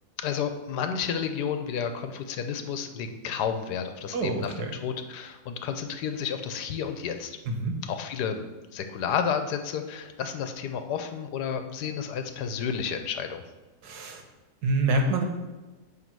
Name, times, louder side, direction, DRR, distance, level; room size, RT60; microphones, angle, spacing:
voice 1, 0.2-7.4 7.8-8.5 8.7-13.4, left 7 dB, 90° left, 7 dB, 1.3 m, -31 dB
voice 2, 4.1-4.7 7.5-7.7 13.8-14.2 14.6-15.2, right 2 dB, 80° right, 4 dB, 1.6 m, -26 dB
9.1 x 3.4 x 6.0 m, 1.2 s
omnidirectional pair, 1.7 m